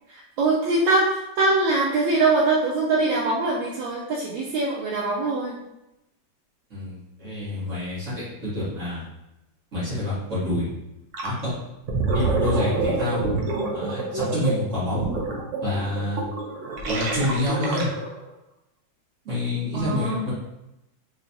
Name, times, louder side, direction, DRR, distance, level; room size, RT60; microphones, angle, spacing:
voice 1, 0.1-5.6 19.7-20.2, right 2 dB, 85° right, -4 dB, 1.3 m, -23 dB
voice 2, 6.7-9.0 9.7-10.7 11.2-11.5 12.1-13.2 13.7-15.0 15.6-16.2 16.9-17.9 19.2-20.3, left 1 dB, 40° right, -9 dB, 1.7 m, -27 dB
Gurgling, 11.1-11.4 11.7-18.2, right 3 dB, 70° right, 0.7 m, -27 dB
3.4 x 3.2 x 2.6 m, 0.91 s
omnidirectional pair, 2.1 m